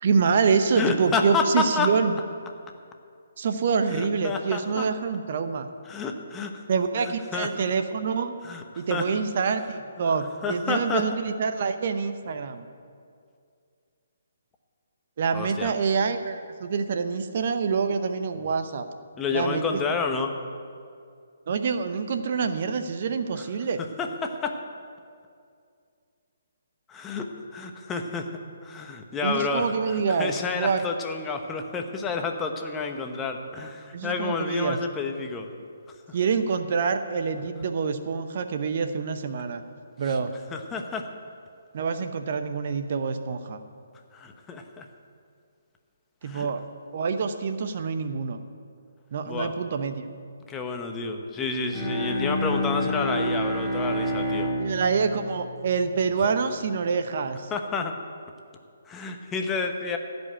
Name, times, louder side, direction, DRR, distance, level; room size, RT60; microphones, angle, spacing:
voice 1, 0.0-2.2 3.4-5.7 6.7-8.3 8.8-12.7 15.2-18.8 19.3-19.8 21.5-23.8 29.2-30.8 33.9-34.8 36.1-39.6 40.0-40.3 41.7-43.6 46.2-46.6 46.9-48.4 49.1-50.1 54.6-57.5, right 5 dB, 50° right, 8 dB, 0.8 m, -26 dB
voice 2, 0.8-1.9 3.9-4.9 5.9-6.6 7.3-7.5 8.4-9.0 10.0-10.1 10.4-11.1 15.3-15.7 19.2-20.3 23.3-23.4 24.0-24.6 26.9-28.3 28.6-29.7 30.1-35.5 40.5-41.1 44.1-44.9 46.2-46.5 49.3-49.5 50.5-54.5 57.5-57.9 58.9-60.0, left 4 dB, 15° left, 4 dB, 1.0 m, -29 dB
Bowed string instrument, 51.6-56.5, equal, 10° right, 2.1 m, -29 dB
16.0 x 5.4 x 9.0 m, 2.3 s
figure-of-eight pair, 140°, 0 cm